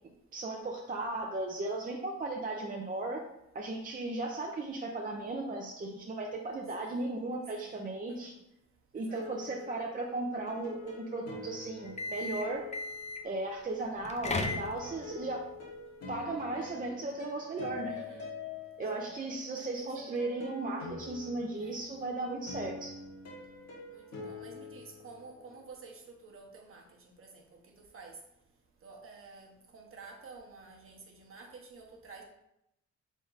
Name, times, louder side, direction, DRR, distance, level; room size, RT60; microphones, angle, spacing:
voice 1, 0.3-3.2 3.5-8.3 8.9-12.6 13.2-15.4 16.1-17.9 18.8-23.0, right 2 dB, 30° right, 0 dB, 0.6 m, -36 dB
voice 2, 6.8-7.1 7.5-7.8 8.2-8.3 9.0-9.5 17.9-18.3 18.9-19.1 19.5-20.1 21.6-21.9 23.9-26.8 27.2-27.4 27.9-28.1 28.8-32.2, right 4 dB, 45° right, 0 dB, 1.1 m, -51 dB
sound 1, 9.0-13.8 14.4-25.7, left 4 dB, 55° left, 1.5 m, -46 dB
sound 2, 11.8-13.3 14.0-15.1, left 3 dB, 25° left, 0.5 m, -36 dB
3.8 x 3.6 x 3.9 m, 0.82 s
cardioid pair, 90°, 30 cm